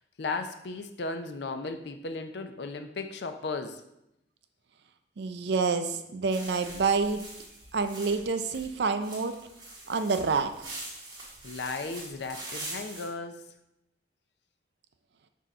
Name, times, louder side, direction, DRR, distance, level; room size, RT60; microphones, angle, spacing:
voice 1, 0.2-3.8 11.4-13.5, left 3 dB, 65° left, 7 dB, 0.5 m, -35 dB
voice 2, 5.2-7.2 7.7-9.4 9.9-10.7, right 4 dB, 65° right, 9 dB, 0.5 m, -28 dB
sound 1, 6.3-13.1, right 2 dB, 25° right, 1.6 m, -43 dB
6.2 x 2.8 x 5.4 m, 0.83 s
head